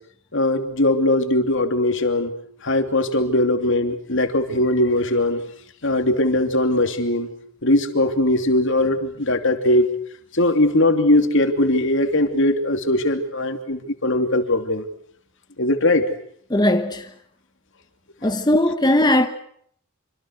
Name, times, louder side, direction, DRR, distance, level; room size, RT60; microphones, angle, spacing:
voice 1, 0.3-2.3 2.6-5.4 5.8-7.3 7.6-9.9 10.3-14.9 15.6-16.1 18.2-18.3, left 1 dB, 60° left, 3.0 m, -20 dB
voice 2, 16.5-17.1 18.2-19.3, left 1 dB, 20° left, 1.3 m, -18 dB
27.0 x 26.0 x 6.6 m
head